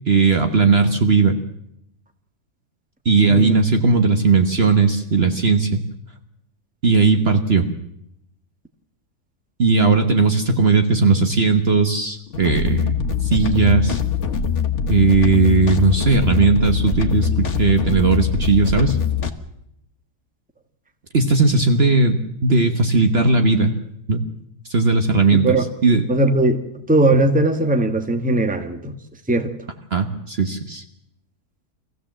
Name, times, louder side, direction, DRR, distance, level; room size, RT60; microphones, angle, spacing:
voice 1, 0.1-1.4 3.0-5.9 6.8-7.7 9.6-14.0 14.9-19.0 21.1-23.7 24.1-24.3 24.7-25.6 25.8-26.0 29.9-30.8, right 4 dB, 45° right, 6 dB, 1.4 m, -17 dB
sound 1, 12.3-19.3, left 7 dB, 50° left, 1.6 m, -22 dB
voice 2, 25.3-25.6 26.1-28.9 29.3-29.5, right 2 dB, 5° right, 7 dB, 1.3 m, -19 dB
23.0 x 15.5 x 7.6 m, 0.78 s
omnidirectional pair, 1.6 m